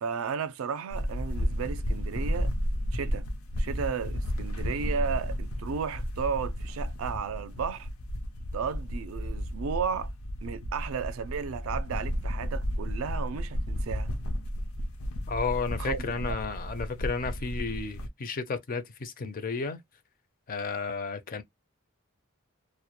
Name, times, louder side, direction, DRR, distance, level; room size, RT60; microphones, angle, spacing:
voice 1, 0.0-2.5 2.9-3.3 3.6-7.9 8.5-10.1 10.4-14.1 15.8-16.4, right 6 dB, 70° right, 0.4 m, -34 dB
Windy Cloth, 0.9-18.1, equal, 90° left, 0.6 m, -33 dB
voice 2, 15.3-19.8 20.5-21.4, left 4 dB, 40° left, 0.4 m, -32 dB
2.1 x 2.1 x 2.8 m
head